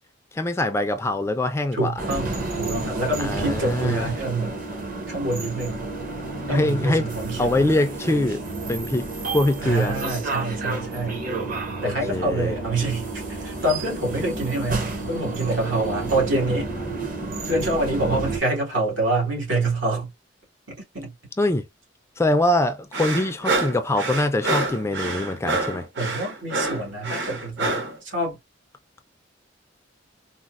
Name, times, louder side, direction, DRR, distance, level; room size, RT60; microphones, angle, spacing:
voice 1, 0.3-1.9 3.2-4.1 6.5-7.1 7.4-8.4 8.7-10.0 11.4-11.5 11.8-12.5 21.4-21.6 22.2-25.8, left 1 dB, 15° left, 0.3 m, -23 dB
voice 2, 1.7-4.6 5.1-5.8 6.5-7.6 9.6-11.3 11.5-16.7 17.5-20.1 20.9-21.1 26.0-28.4, right 2 dB, 80° right, 1.9 m, -26 dB
sound 1, 2.0-18.4, right 3 dB, 45° right, 0.8 m, -31 dB
sound 2, 22.9-28.0, right 2 dB, 60° right, 1.1 m, -27 dB
4.0 x 2.0 x 2.4 m
head